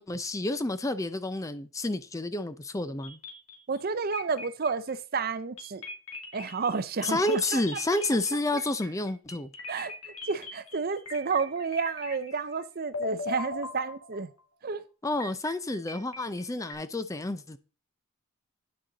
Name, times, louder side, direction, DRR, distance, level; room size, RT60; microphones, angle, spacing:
voice 1, 0.0-3.2 7.0-9.5 15.0-17.6, left 2 dB, 15° left, 0.4 m, -30 dB
sound 1, 3.0-3.8 4.1-5.0 5.6-12.6 12.9-14.4 15.2-16.7, left 3 dB, 80° left, 2.4 m, -40 dB
voice 2, 3.7-5.8 6.3-7.6 8.5-8.6 9.7-14.3 14.6-14.8, right 5 dB, 45° right, 0.5 m, -31 dB
9.6 x 6.2 x 3.9 m
head